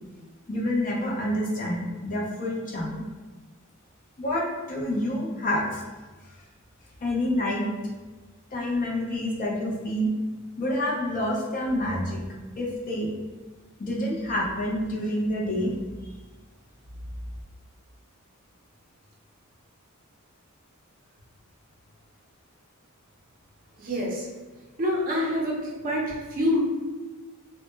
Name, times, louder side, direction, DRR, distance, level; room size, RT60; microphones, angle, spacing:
voice 1, 0.5-3.0 4.2-5.8 7.0-7.7 8.5-10.1 10.6-12.2 12.6-13.1 13.8-15.8 16.0-16.1, left 1 dB, 40° left, -3 dB, 0.5 m, -28 dB
voice 2, 23.8-24.3 24.8-25.6 25.8-26.6, left 1 dB, 40° right, -3 dB, 0.5 m, -26 dB
2.0 x 2.0 x 3.0 m, 1.3 s
head